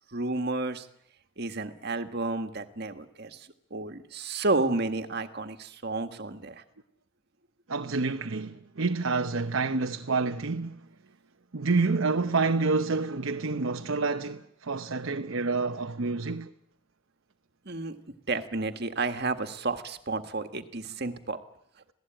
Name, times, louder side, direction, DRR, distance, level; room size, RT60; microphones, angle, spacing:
voice 1, 0.1-0.9 1.4-6.6 17.6-21.4, right 3 dB, 50° right, 1.7 m, -31 dB
voice 2, 7.7-10.8 11.5-16.5, right 3 dB, 70° right, 0.9 m, -28 dB
26.5 x 17.5 x 9.0 m
head